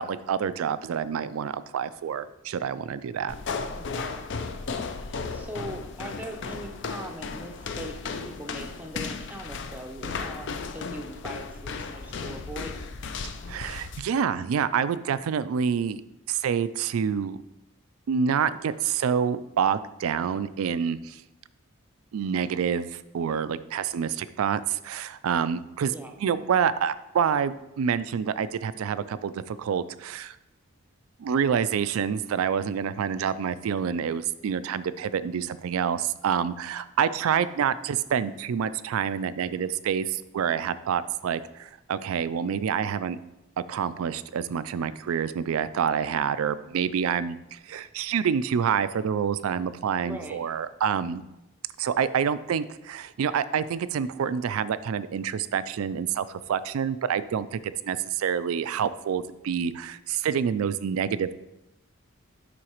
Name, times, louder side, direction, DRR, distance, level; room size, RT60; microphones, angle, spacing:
voice 1, 0.0-3.3 13.5-16.0 16.3-17.4 18.1-21.2 22.1-30.4 31.2-43.2 43.6-51.2 51.8-61.3, right 7 dB, 85° right, 15 dB, 0.3 m, -27 dB
sound 1, 3.3-14.0, left 4 dB, 55° left, 0.5 m, -35 dB
voice 2, 3.7-4.2 5.0-8.0 8.2-12.7 25.9-26.1 37.3-37.6 50.0-50.4, right 1 dB, 10° right, 3 dB, 0.6 m, -41 dB
11.0 x 3.9 x 3.0 m, 0.91 s
head